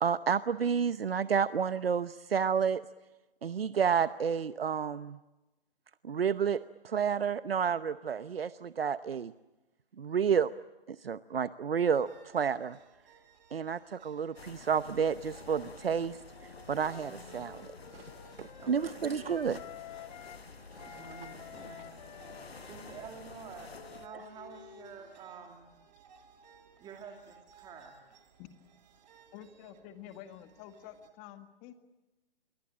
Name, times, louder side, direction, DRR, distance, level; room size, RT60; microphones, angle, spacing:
voice 1, 0.0-2.8 3.4-5.2 6.0-9.3 10.0-10.5 10.9-12.8 13.5-16.2 16.7-17.7 18.4-19.6, right 7 dB, 75° right, 14 dB, 0.9 m, -30 dB
sound 1, 11.8-31.1, right 6 dB, 45° right, 3.1 m, -60 dB
sound 2, 14.4-24.1, left 4 dB, 85° left, 1.4 m, -50 dB
Wind instrument woodwind instrument, 16.1-20.5 20.8-25.3, left 10 dB, 45° left, 2.7 m, -51 dB
voice 2, 17.0-17.4 18.6-19.1 20.9-21.9 22.7-25.7 26.8-28.0, right 6 dB, 15° right, 3 dB, 2.7 m, -49 dB
voice 3, 29.3-31.7, left 11 dB, 25° left, 9 dB, 1.9 m, -49 dB
27.0 x 23.5 x 8.7 m, 1.1 s
figure-of-eight pair, 135°, 30 cm